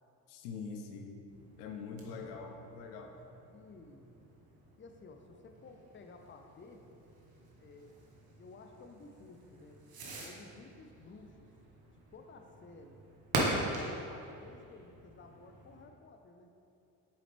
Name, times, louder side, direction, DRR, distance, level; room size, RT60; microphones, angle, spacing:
voice 1, 0.3-1.2 1.6-3.1, left 5 dB, 85° left, 3 dB, 0.7 m, -44 dB
Fireworks, 1.3-15.9, right 2 dB, 50° right, 1.4 m, -42 dB
voice 2, 3.5-4.1 4.8-6.9 7.6-8.0 8.4-9.8 10.2-11.5 12.1-13.0 13.6-16.5, left 3 dB, 25° left, 4 dB, 0.7 m, -54 dB
7.2 x 4.9 x 3.4 m, 2.8 s
hypercardioid pair, 60°, 46 cm